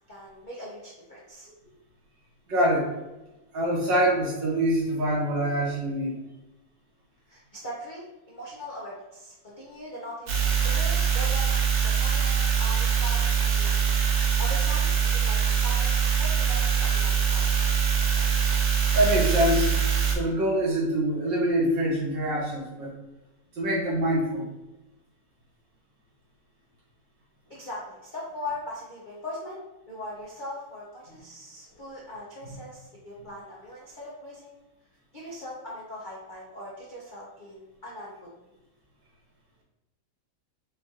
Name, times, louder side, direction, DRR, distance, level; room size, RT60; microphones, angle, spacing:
voice 1, 0.1-1.5 7.3-13.8 14.4-17.4 27.5-29.6 29.9-34.6 35.1-38.3, left 1 dB, 40° left, -7 dB, 0.7 m, -40 dB
voice 2, 2.5-2.9 3.5-6.2 18.9-19.7 20.1-22.9 23.5-24.5, equal, 75° right, -4 dB, 2.1 m, -25 dB
sound 1, 10.3-20.1, right 7 dB, 60° right, 1.2 m, -23 dB
6.2 x 2.6 x 2.9 m, 1.0 s
omnidirectional pair, 2.0 m